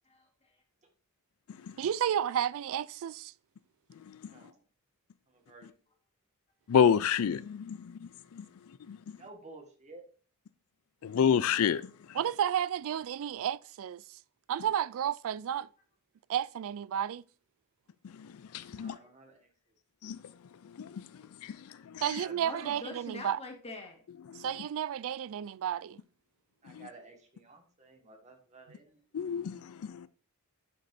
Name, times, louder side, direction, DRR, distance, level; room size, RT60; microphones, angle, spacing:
voice 1, 0.1-0.6 18.9-19.1 21.2-21.6 22.3-24.0, left 2 dB, 25° left, 1.8 m, -45 dB
voice 2, 1.8-3.3 12.1-14.2 14.5-15.7 16.3-17.2 22.0-23.4 24.4-26.0, right 9 dB, 65° right, 0.3 m, -32 dB
voice 3, 4.1-4.6 5.3-5.8 9.1-10.0 12.9-13.1 18.7-19.5 22.2-22.7 26.6-29.0, right 3 dB, 30° right, 1.7 m, -53 dB
voice 4, 6.7-8.5 8.9-9.0 11.0-12.2 18.0-19.0 20.0-20.2 20.6-22.0 24.3-24.5 26.7-26.9 29.1-30.1, left 7 dB, 70° left, 0.4 m, -30 dB
11.5 x 5.3 x 2.6 m
head